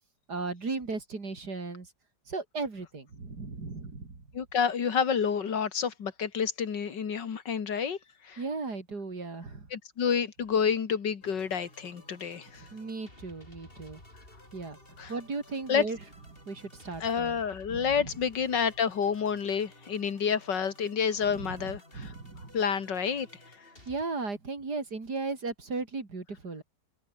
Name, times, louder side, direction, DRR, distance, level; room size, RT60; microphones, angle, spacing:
voice 1, 0.3-1.9 2.3-4.2 8.4-9.7 12.6-14.0 14.5-14.8 15.1-16.0 16.3-17.4 17.7-18.1 21.3-22.6 23.9-26.6, right 3 dB, 65° right, 4.3 m, -36 dB
voice 2, 4.3-8.0 8.2-8.4 9.7-12.7 15.0-15.1 15.7-15.8 17.0-22.1 22.5-23.3, left 7 dB, 80° left, 2.5 m, -29 dB
sound 1, 11.2-24.0, left 1 dB, 30° left, 7.8 m, -54 dB
omnidirectional pair, 1.9 m